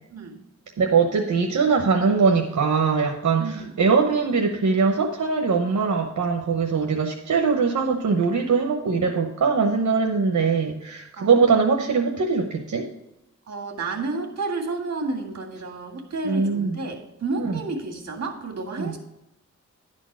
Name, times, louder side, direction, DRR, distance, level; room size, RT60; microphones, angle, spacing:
voice 1, 0.8-12.8 16.3-16.8 17.4-17.6 18.7-18.9, right 5 dB, 85° right, 2 dB, 0.9 m, -22 dB
voice 2, 3.4-3.7 11.2-11.4 13.5-19.0, right 3 dB, 60° right, 3 dB, 2.1 m, -31 dB
11.0 x 4.5 x 6.1 m, 0.91 s
wide cardioid pair, 120°, 29 cm